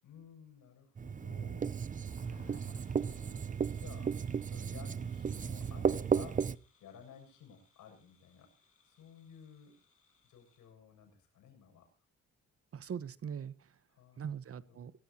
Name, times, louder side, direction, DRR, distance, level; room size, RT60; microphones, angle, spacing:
voice 1, 0.0-1.7 2.2-3.5 3.7-4.2 4.5-6.5 6.8-8.5 8.8-9.7 10.2-11.9 13.9-14.3 14.7-14.8, left 8 dB, 80° left, 4 dB, 7.5 m, -55 dB
Writing, 1.0-6.6, right 6 dB, 25° right, 0.6 m, -34 dB
sound 1, 1.6-10.7, left 5 dB, 45° left, 7.7 m, -68 dB
voice 2, 12.7-13.8 14.2-15.0, right 7 dB, 50° right, 17 dB, 1.1 m, -42 dB
24.0 x 14.0 x 2.9 m, 0.37 s
cardioid pair, 90°, 30 cm